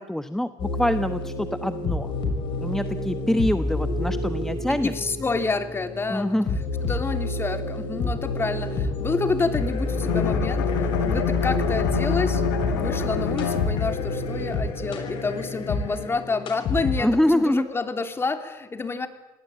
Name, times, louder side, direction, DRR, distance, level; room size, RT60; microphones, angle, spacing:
voice 1, 0.0-2.1 2.6-4.9 6.1-6.6 17.0-17.7, left 1 dB, 5° left, 10 dB, 1.1 m, -25 dB
sound 1, 0.6-17.4, left 2 dB, 55° left, 6.3 m, -28 dB
voice 2, 4.8-6.4 6.8-10.7 11.0-12.4 12.7-19.1, left 4 dB, 25° left, 7 dB, 3.0 m, -28 dB
Bowed string instrument, 9.9-14.2, left 9 dB, 90° left, 3.1 m, -27 dB
27.5 x 18.5 x 8.7 m, 1.1 s
supercardioid pair, 80°, 10 cm